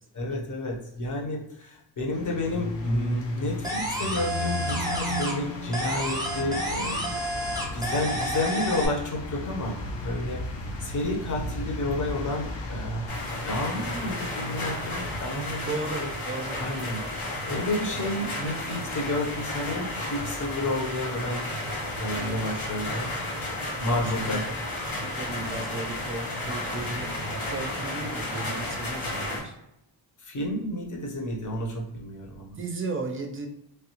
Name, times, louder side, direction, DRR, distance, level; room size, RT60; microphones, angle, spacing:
voice 1, 0.1-7.0 7.7-10.4 10.8-13.1 13.4-16.1 16.6-21.5 22.0-23.1 23.8-24.4 30.2-32.6, left 1 dB, 40° left, 0 dB, 0.8 m, -31 dB
sound 1, 2.1-15.2, left 2 dB, 65° left, 0.7 m, -35 dB
sound 2, 3.6-5.5 5.7-8.9, equal, 10° right, 0.8 m, -30 dB
sound 3, 13.1-29.4, left 1 dB, 90° left, 1.3 m, -33 dB
voice 2, 15.6-16.6 23.9-24.4 25.0-29.5 32.5-33.5, right 3 dB, 30° right, 4 dB, 0.4 m, -35 dB
3.3 x 2.3 x 2.9 m, 0.82 s
wide cardioid pair, 120°, 46 cm